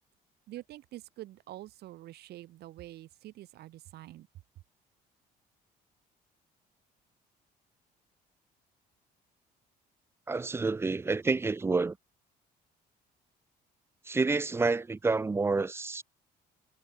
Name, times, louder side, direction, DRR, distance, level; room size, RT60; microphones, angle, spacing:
voice 1, 0.5-4.3, right 15 dB, 70° right, 2.3 m, -46 dB
voice 2, 10.3-12.0 14.1-16.0, right 3 dB, 15° right, 0.4 m, -28 dB
cardioid pair, 110°, 17 cm